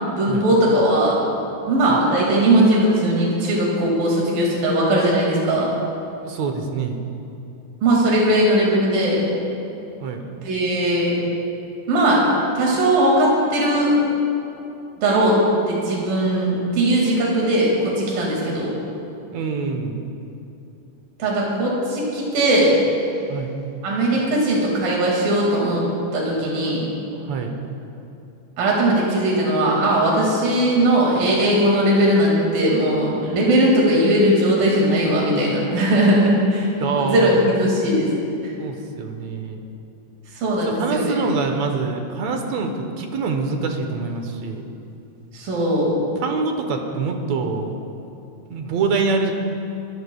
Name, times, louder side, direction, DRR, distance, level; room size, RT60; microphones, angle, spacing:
voice 1, 0.1-1.2 1.7-5.7 7.8-9.3 10.4-11.1 11.9-12.2 12.6-14.0 15.0-15.4 15.7-18.7 21.2-22.7 23.8-25.8 26.1-26.8 28.6-38.1 40.4-41.2 45.3-45.9, right 1 dB, 90° right, -4 dB, 3.9 m, -19 dB
voice 2, 6.2-7.0 10.0-10.2 19.3-20.0 23.3-23.5 27.1-27.5 36.8-37.5 38.6-39.6 40.6-44.6 46.2-47.7 48.5-49.3, right 4 dB, 65° right, 4 dB, 1.9 m, -25 dB
25.0 x 15.0 x 2.3 m, 2.8 s
omnidirectional pair, 3.9 m